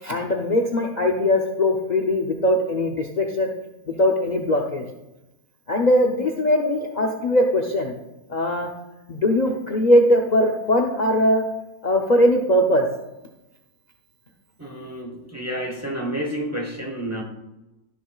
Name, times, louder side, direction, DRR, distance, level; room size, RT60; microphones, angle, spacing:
voice 1, 0.0-3.5 3.9-4.8 5.7-7.9 8.3-8.7 9.1-11.4 11.8-12.9, left 1 dB, 70° left, 2 dB, 0.4 m, -20 dB
voice 2, 14.6-17.2, right 1 dB, 15° right, 3 dB, 0.7 m, -30 dB
12.5 x 6.9 x 2.3 m, 0.96 s
omnidirectional pair, 1.8 m